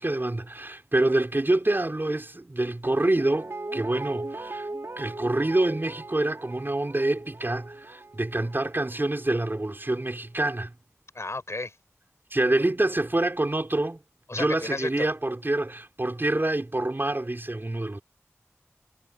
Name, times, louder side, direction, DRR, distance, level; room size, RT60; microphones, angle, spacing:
voice 1, 0.0-4.7 5.0-10.7 12.3-14.0 14.3-18.0, right 2 dB, 45° right, 4.0 m, -26 dB
Guitar, 2.8-9.9 10.2-10.3, right 2 dB, 65° right, 2.1 m, -39 dB
voice 2, 11.1-11.7 14.3-15.1, left 2 dB, 70° left, 4.4 m, -32 dB
wide cardioid pair, 40°, 5 cm